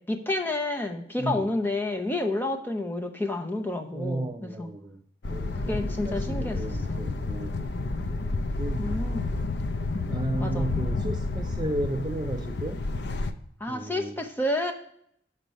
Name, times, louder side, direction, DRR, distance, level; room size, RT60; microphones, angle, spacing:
voice 1, 0.0-4.7 5.6-7.0 8.8-9.3 10.4-10.7 13.6-14.7, left 2 dB, 10° left, 4 dB, 0.7 m, -30 dB
voice 2, 3.9-5.0 5.3-7.7 8.6-8.9 10.1-12.8 13.7-14.2, right 1 dB, 25° right, 5 dB, 0.3 m, -33 dB
sound 1, 5.2-13.3, left 2 dB, 70° left, 0.5 m, -30 dB
6.7 x 4.4 x 6.1 m, 0.69 s
head